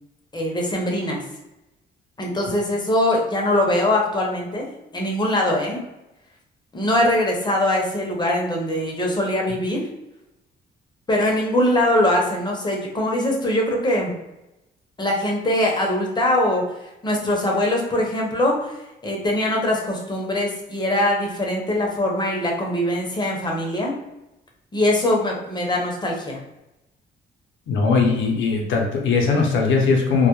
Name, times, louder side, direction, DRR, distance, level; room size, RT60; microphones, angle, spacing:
voice 1, 0.3-1.2 2.2-4.7 4.9-5.8 6.7-9.9 11.1-14.1 15.0-16.6 17.0-18.7 19.0-23.9 24.7-26.4, left 1 dB, 20° left, -1 dB, 0.7 m, -22 dB
voice 2, 27.7-30.3, left 4 dB, 75° left, 1 dB, 0.6 m, -19 dB
2.2 x 2.0 x 2.9 m, 0.94 s
cardioid pair, 90°, 20 cm